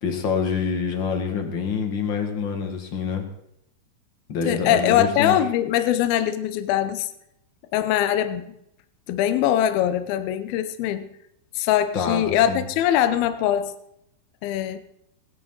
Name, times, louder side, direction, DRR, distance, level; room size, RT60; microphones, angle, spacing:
voice 1, 0.0-3.2 4.3-5.4 11.9-12.6, left 6 dB, 40° left, 4 dB, 2.0 m, -26 dB
voice 2, 4.5-7.1 7.7-8.6 9.1-11.1 11.5-13.7 14.4-14.8, left 11 dB, 75° left, 10 dB, 2.6 m, -22 dB
21.0 x 11.0 x 4.0 m, 0.78 s
omnidirectional pair, 4.7 m